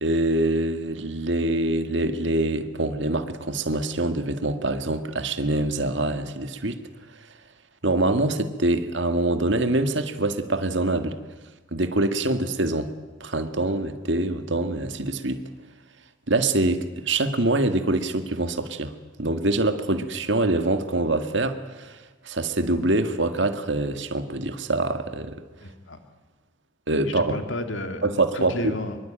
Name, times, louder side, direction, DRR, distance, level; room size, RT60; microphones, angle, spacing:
voice 1, 0.0-6.8 7.8-11.2 11.7-12.9 13.2-15.4 16.3-18.9 19.2-22.0 22.2-25.4 26.9-27.4 28.0-28.7, right 2 dB, 65° right, 8 dB, 2.0 m, -24 dB
voice 2, 25.6-26.0 27.0-28.0 28.3-29.0, left 2 dB, 70° left, 7 dB, 2.5 m, -32 dB
24.5 x 23.0 x 9.0 m, 1.3 s
head